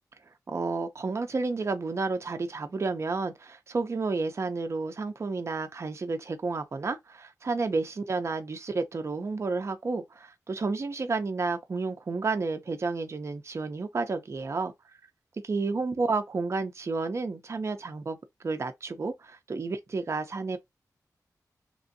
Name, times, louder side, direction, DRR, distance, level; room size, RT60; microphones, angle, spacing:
voice 1, 0.5-14.7 15.4-18.2 18.4-20.6, right 3 dB, 45° right, 0.4 m, -31 dB
2.9 x 2.5 x 2.5 m
wide cardioid pair, 100°, 7 cm